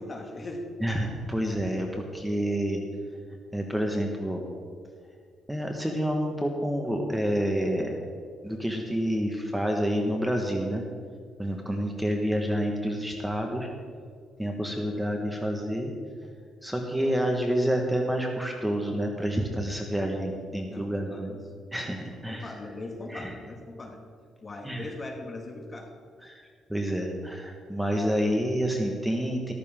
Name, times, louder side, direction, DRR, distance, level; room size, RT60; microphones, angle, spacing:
voice 1, 0.0-0.7 20.7-21.4 22.1-24.0 24.4-25.9, left 2 dB, 30° left, 2 dB, 2.2 m, -40 dB
voice 2, 0.8-2.8 3.5-4.4 5.5-7.9 8.4-10.8 11.4-13.7 14.4-15.9 16.6-21.3 21.7-22.5 23.1-23.3 24.6-24.9 26.2-29.5, equal, 5° right, 2 dB, 1.5 m, -28 dB
14.0 x 13.5 x 3.8 m, 2.1 s
cardioid pair, 90°, 0 cm